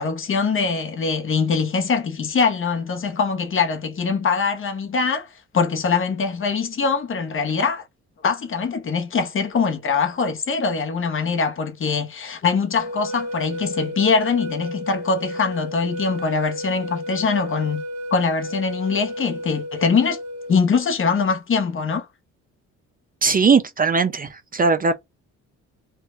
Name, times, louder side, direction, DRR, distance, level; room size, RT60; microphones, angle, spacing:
voice 1, 0.0-5.3 5.5-7.8 8.2-17.8 18.1-20.2 20.5-22.1, left 5 dB, 45° left, 1.0 m, -22 dB
sound 1, 12.8-20.6, equal, 65° right, 1.1 m, -32 dB
voice 2, 23.2-24.9, right 5 dB, 30° right, 0.6 m, -19 dB
3.2 x 2.6 x 4.5 m
cardioid pair, 90°, 30 cm